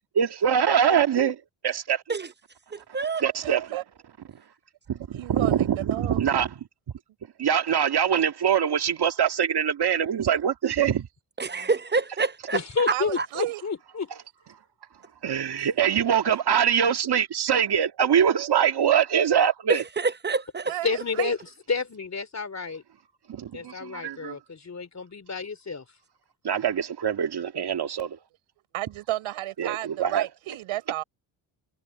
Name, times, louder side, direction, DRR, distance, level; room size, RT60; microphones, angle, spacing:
voice 1, 0.1-2.0 3.2-3.7 4.9-6.5 7.4-11.1 15.2-19.8 23.3-24.4 26.4-28.2 29.6-30.3, right 8 dB, 55° right, 2.0 m, -23 dB
voice 2, 2.7-3.2 11.4-12.6 13.2-13.3 19.7-20.7, right 4 dB, 20° right, 0.9 m, -27 dB
voice 3, 3.4-3.8 5.1-6.2 12.9-13.6 20.7-21.4 28.7-31.0, right 16 dB, 85° right, 6.4 m, -32 dB
voice 4, 12.5-14.1 20.8-21.4 21.7-22.8 23.5-25.8, left 5 dB, 35° left, 3.4 m, -30 dB
supercardioid pair, 70°, 48 cm